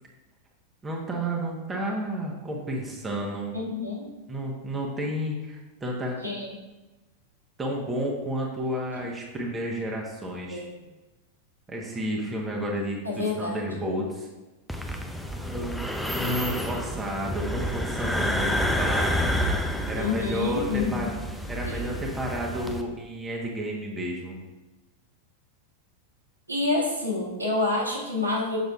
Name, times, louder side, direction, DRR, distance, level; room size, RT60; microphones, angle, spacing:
voice 1, 0.8-3.5 4.3-6.2 7.6-10.6 11.7-14.3 15.5-19.3 19.9-21.1 21.5-24.4, right 1 dB, 15° right, -2 dB, 1.1 m, -31 dB
voice 2, 3.5-4.1 6.2-6.5 10.5-10.6 13.0-13.6 20.0-21.1 26.5-28.6, left 3 dB, 85° right, -7 dB, 2.0 m, -28 dB
sound 1, 14.7-22.8, equal, ahead, 0.6 m, -29 dB
6.6 x 6.3 x 2.4 m, 1.1 s
figure-of-eight pair, 90°, 0 cm